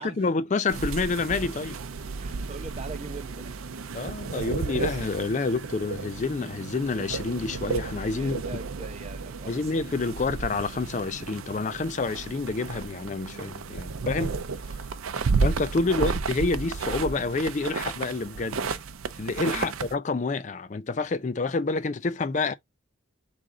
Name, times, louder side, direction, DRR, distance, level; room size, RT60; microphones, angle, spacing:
voice 1, 0.0-1.8 3.9-8.6 9.5-14.3 14.7-14.8 15.4-18.8 19.2-22.5, left 3 dB, 35° left, 0.4 m, -28 dB
sound 1, 0.7-19.9, right 4 dB, 90° right, 0.5 m, -32 dB
voice 2, 2.2-3.7 8.2-9.7 13.7-13.9 15.9-16.1 19.5-19.8, right 3 dB, 30° right, 0.7 m, -42 dB
3.7 x 3.4 x 3.7 m
head